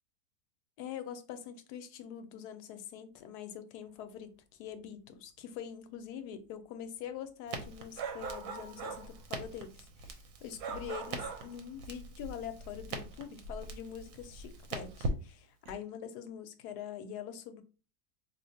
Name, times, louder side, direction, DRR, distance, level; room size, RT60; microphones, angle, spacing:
voice 1, 0.8-17.6, left 9 dB, 90° left, 1.1 m, -44 dB
Crackle, 7.5-15.8, right 2 dB, 65° right, 1.0 m, -42 dB
sound 1, 8.0-9.1 10.6-11.5, right 6 dB, 85° right, 1.3 m, -40 dB
4.2 x 2.5 x 2.7 m
omnidirectional pair, 1.7 m